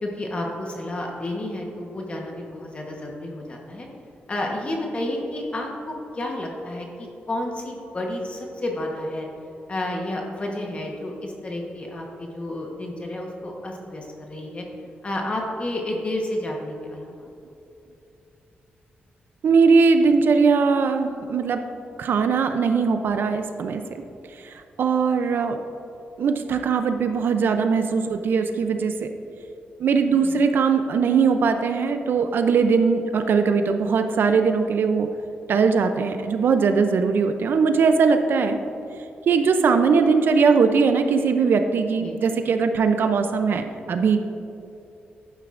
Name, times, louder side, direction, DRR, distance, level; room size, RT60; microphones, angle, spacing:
voice 1, 0.0-3.9 4.3-9.3 9.7-14.6 15.0-17.3 30.1-30.4 42.0-42.2, left 1 dB, 30° left, 0 dB, 1.1 m, -31 dB
voice 2, 19.4-21.6 22.0-24.0 24.3-25.6 26.2-29.1 29.8-35.1 35.5-38.6 39.3-44.2, right 5 dB, 65° right, 7 dB, 0.5 m, -20 dB
11.5 x 9.1 x 2.5 m, 2.9 s
wide cardioid pair, 125°, 4 cm